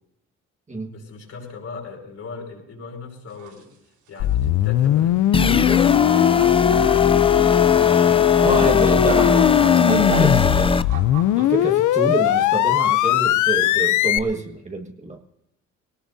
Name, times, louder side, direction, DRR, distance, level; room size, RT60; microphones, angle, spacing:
voice 1, 0.9-3.7 4.1-8.6, left 4 dB, 55° left, -1 dB, 5.7 m, -38 dB
sound 1, 3.3-3.6 4.1-4.4 5.3-5.5 5.8-7.2 8.0-8.1 8.8-11.7 11.9-12.6 13.5-13.7, right 6 dB, 80° right, 3.1 m, -36 dB
sound 2, 4.2-14.2, left 14 dB, 80° left, 0.6 m, -19 dB
sound 3, 5.3-10.8, left 4 dB, 20° left, 0.6 m, -19 dB
voice 2, 8.4-9.6 9.9-10.8 11.3-15.2, right 2 dB, 25° right, 3 dB, 1.8 m, -27 dB
21.0 x 18.5 x 2.7 m, 0.82 s
cardioid pair, 90°, 30 cm